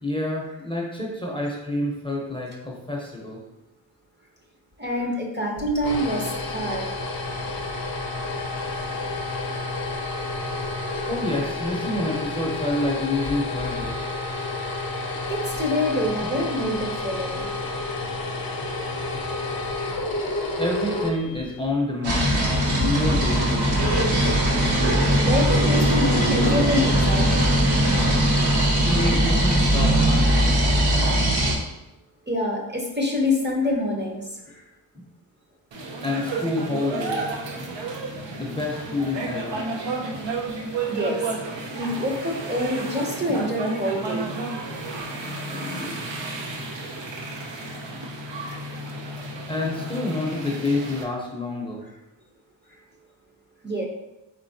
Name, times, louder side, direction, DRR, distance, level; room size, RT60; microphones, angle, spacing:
voice 1, 0.0-3.4 11.1-13.9 19.0-19.2 20.6-23.7 28.8-30.6 36.0-37.3 38.3-39.6 43.3-43.4 45.5-46.0 49.5-51.8, left 2 dB, 10° left, -2 dB, 0.6 m, -28 dB
voice 2, 4.8-6.9 8.7-8.8 9.5-9.7 10.9-11.1 14.5-14.6 15.1-17.4 24.7-24.9 25.2-27.5 32.3-34.3 34.5-34.6 40.9-41.2 41.7-44.3 46.8-47.0 53.6-53.8, left 1 dB, 25° right, 0 dB, 0.7 m, -26 dB
sound 1, 5.6-21.8, left 2 dB, 55° left, 0.6 m, -30 dB
sound 2, 22.0-31.5, right 1 dB, 60° right, 1.0 m, -20 dB
sound 3, 35.7-51.0, right 3 dB, 75° right, 0.7 m, -32 dB
4.5 x 4.0 x 2.7 m, 0.96 s
wide cardioid pair, 120°, 44 cm